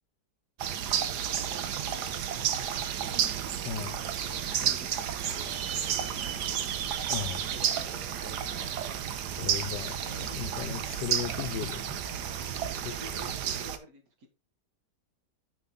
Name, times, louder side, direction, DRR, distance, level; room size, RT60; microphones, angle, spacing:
sound 1, 0.6-13.8, right 9 dB, 75° right, 1.4 m, -32 dB
voice 1, 1.0-2.7 4.5-6.6 6.9-8.7 12.8-14.3, right 2 dB, 55° right, 2.0 m, -50 dB
voice 2, 3.6-4.0 7.1-7.5 9.4-12.1 12.8-13.0, left 10 dB, 85° left, 1.3 m, -37 dB
sound 2, 6.1-13.5, right 1 dB, 90° right, 2.6 m, -50 dB
9.5 x 5.2 x 3.6 m
omnidirectional pair, 1.9 m